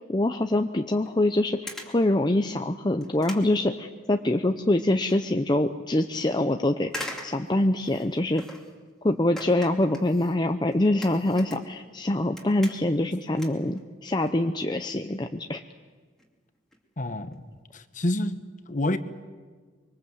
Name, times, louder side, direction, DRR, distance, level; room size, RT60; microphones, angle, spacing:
voice 1, 0.1-8.4 9.0-15.6, left 1 dB, 20° left, 6 dB, 0.7 m, -25 dB
sound 1, 1.0-1.2 1.7-2.0 2.5-2.6 3.0-4.4 4.7-5.2 5.6-5.7 6.9-8.8 9.4-12.0 12.2-13.1 13.3-14.3 14.6-14.8 15.5-15.6 15.9-16.0 16.2-16.3 16.5-16.8 17.2-17.3 17.6-17.7, equal, ahead, 2.7 m, -42 dB
voice 2, 17.0-17.4 17.7-19.0, left 1 dB, 40° left, 10 dB, 1.2 m, -28 dB
25.0 x 24.0 x 7.9 m, 1.5 s
head